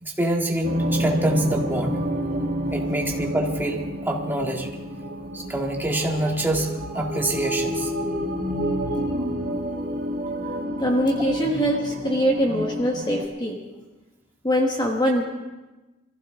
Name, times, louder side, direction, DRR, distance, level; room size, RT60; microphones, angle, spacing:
voice 1, 0.0-2.1 2.7-4.7 5.3-7.9, right 1 dB, 10° right, 0 dB, 1.8 m, -26 dB
sound 1, 0.6-13.3, equal, 40° right, 3.2 m, -29 dB
voice 2, 10.8-13.6 14.4-15.2, equal, 20° left, 0 dB, 1.3 m, -23 dB
24.0 x 15.0 x 3.6 m, 1.1 s
head